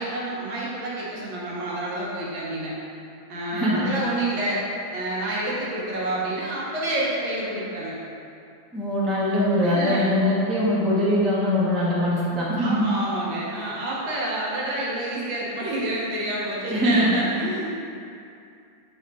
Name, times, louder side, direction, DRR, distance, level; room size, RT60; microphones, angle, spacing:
voice 1, 0.0-2.7 3.3-4.6 4.9-8.0 9.6-10.1 12.6-17.7, right 1 dB, 85° right, -6 dB, 2.1 m, -28 dB
voice 2, 3.5-3.9 8.7-12.8 16.7-17.2, left 1 dB, ahead, -7 dB, 0.5 m, -22 dB
7.0 x 3.6 x 4.1 m, 2.5 s
omnidirectional pair, 2.1 m